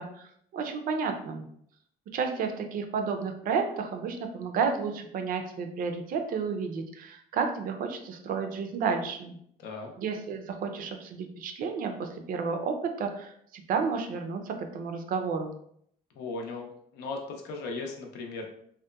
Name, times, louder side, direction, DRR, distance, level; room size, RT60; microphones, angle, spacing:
voice 1, 0.0-1.5 2.1-9.4 10.0-15.5, right 5 dB, 55° right, 6 dB, 0.4 m, -31 dB
voice 2, 9.6-9.9 16.1-18.6, left 3 dB, 80° left, 2 dB, 0.6 m, -37 dB
2.8 x 2.1 x 2.2 m, 0.68 s
cardioid pair, 110°, 17 cm